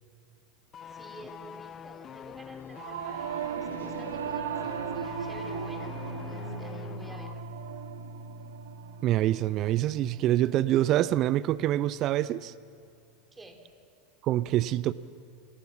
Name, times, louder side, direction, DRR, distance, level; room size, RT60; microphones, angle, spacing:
sound 1, 0.7-7.4 7.7-7.8, left 8 dB, 35° left, 0.8 m, -45 dB
voice 1, 0.9-6.0 6.2-7.4 13.3-13.6, right 2 dB, 15° right, 3.2 m, -50 dB
Singing / Musical instrument, 2.7-12.3, right 6 dB, 75° right, 1.4 m, -38 dB
voice 2, 9.0-12.5 14.2-14.9, right 13 dB, 45° right, 0.5 m, -25 dB
28.0 x 19.0 x 7.3 m
hypercardioid pair, 85°, 0 cm